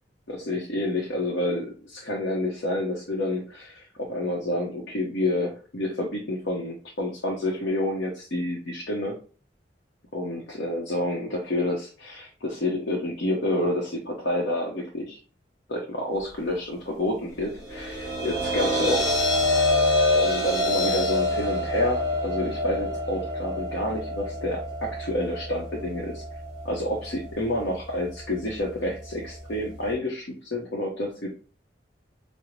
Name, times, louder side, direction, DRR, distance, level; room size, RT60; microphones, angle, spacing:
voice 1, 0.3-9.2 10.1-15.2 15.7-19.1 20.1-26.2 26.6-31.3, left 1 dB, 75° left, -2 dB, 0.7 m, -29 dB
sound 1, 17.6-29.9, left 1 dB, 15° left, 1.3 m, -27 dB
5.0 x 2.0 x 3.1 m, 0.38 s
head